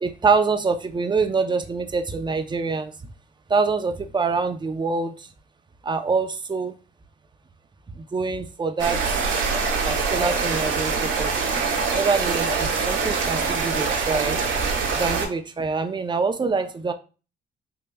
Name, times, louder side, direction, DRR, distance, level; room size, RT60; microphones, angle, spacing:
voice 1, 0.0-2.9 3.5-5.1 5.8-6.7 8.0-9.2 9.9-11.3 11.9-14.4 14.9-16.9, right 4 dB, 25° right, 7 dB, 0.5 m, -25 dB
sound 1, 8.8-15.3, right 4 dB, 85° right, 1.2 m, -24 dB
5.1 x 2.9 x 2.2 m, 0.33 s
cardioid pair, 90°, 20 cm